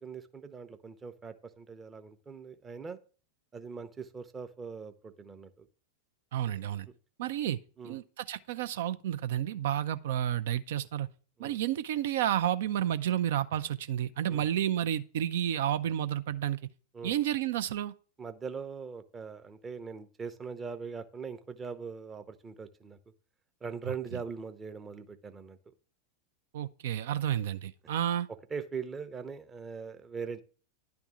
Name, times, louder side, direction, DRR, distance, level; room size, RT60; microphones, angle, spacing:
voice 1, 0.0-3.0 3.5-5.7 7.8-8.0 11.4-11.6 14.3-14.5 16.9-17.2 18.2-23.0 23.6-25.6 27.3-27.4 28.5-30.4, right 5 dB, 20° right, 0.7 m, -41 dB
voice 2, 6.3-6.9 7.2-7.6 7.8-11.1 11.4-16.6 17.0-17.9 26.5-28.3, right 11 dB, 55° right, 0.5 m, -31 dB
10.5 x 3.5 x 7.2 m
figure-of-eight pair, 90°, 0 cm